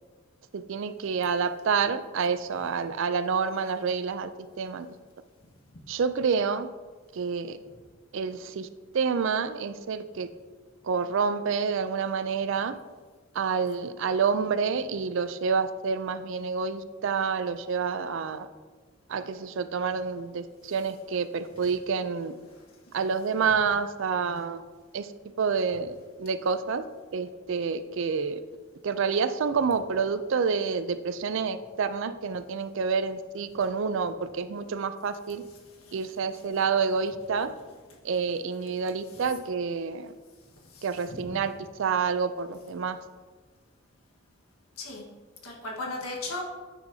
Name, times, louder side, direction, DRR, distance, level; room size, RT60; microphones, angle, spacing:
voice 1, 0.5-4.3 4.6-4.9 5.9-6.7 7.1-7.6 8.1-8.7 8.9-10.3 10.8-12.8 13.3-18.5 19.1-22.3 22.9-24.6 24.9-25.1 25.4-26.8 27.1-28.4 28.8-35.4 35.9-37.5 38.0-40.1 40.8-41.5 41.8-43.0, right 5 dB, 60° right, 12 dB, 0.4 m, -28 dB
voice 2, 45.4-46.4, left 2 dB, 85° left, -1 dB, 1.5 m, -36 dB
9.1 x 6.1 x 2.8 m, 1.4 s
head